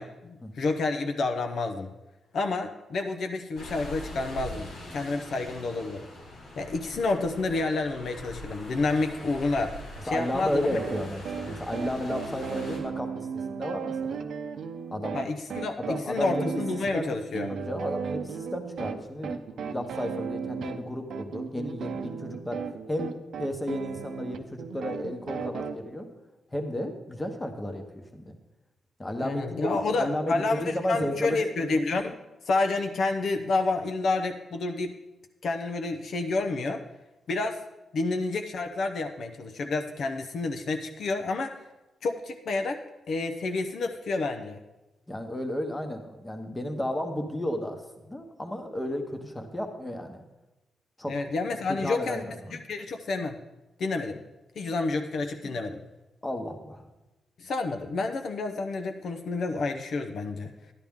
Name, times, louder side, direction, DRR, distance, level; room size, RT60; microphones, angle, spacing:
voice 1, 0.0-1.9 2.3-6.0 6.6-9.8 10.1-10.7 15.1-17.5 29.2-32.2 32.5-34.9 35.4-36.8 37.3-37.6 37.9-41.6 42.0-42.8 43.1-44.6 51.1-53.4 53.8-54.2 54.6-55.8 57.4-60.5, left 3 dB, 60° left, 5 dB, 0.7 m, -29 dB
sound 1, 3.5-12.8, equal, 85° left, 3.6 m, -43 dB
voice 2, 10.1-14.2 14.9-15.2 15.8-16.6 16.9-17.1 17.5-22.6 22.9-26.1 26.5-28.3 29.0-29.6 30.0-31.4 45.1-50.2 51.0-51.2 51.7-52.6 55.4-55.5 56.2-56.8, left 1 dB, 15° left, 5 dB, 1.1 m, -33 dB
sound 2, 10.8-25.7, right 6 dB, 75° right, 0.7 m, -36 dB
11.5 x 10.5 x 3.6 m, 1.0 s
wide cardioid pair, 150°, 0 cm